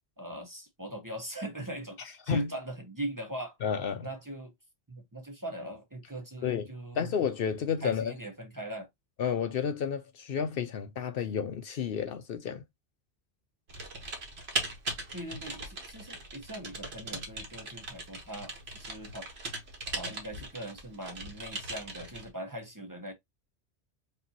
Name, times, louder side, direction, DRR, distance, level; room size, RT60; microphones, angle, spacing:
voice 1, 0.2-3.6 4.0-4.5 4.9-7.1 7.8-8.9 15.1-19.3 20.0-23.1, right 1 dB, 20° right, 1.0 m, -40 dB
voice 2, 3.6-4.1 6.4-6.7 6.9-8.1 9.2-12.6, left 7 dB, 65° left, 0.7 m, -31 dB
Typing, 13.7-22.3, right 2 dB, 75° right, 1.6 m, -39 dB
5.3 x 2.8 x 2.7 m
omnidirectional pair, 1.1 m